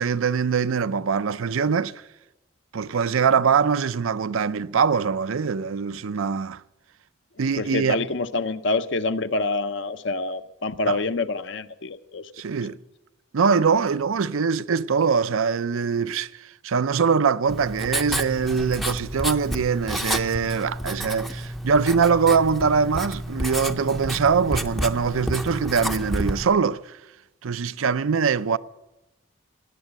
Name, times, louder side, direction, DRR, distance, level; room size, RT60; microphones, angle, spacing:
voice 1, 0.0-1.9 2.7-6.6 7.4-8.0 10.9-11.0 12.4-12.8 13.3-27.0 27.4-28.6, right 5 dB, 90° right, 0.5 m, -23 dB
voice 2, 7.6-12.3, left 3 dB, 60° left, 0.7 m, -27 dB
Writing, 17.5-26.4, equal, ahead, 0.5 m, -30 dB
18.0 x 8.9 x 8.1 m
head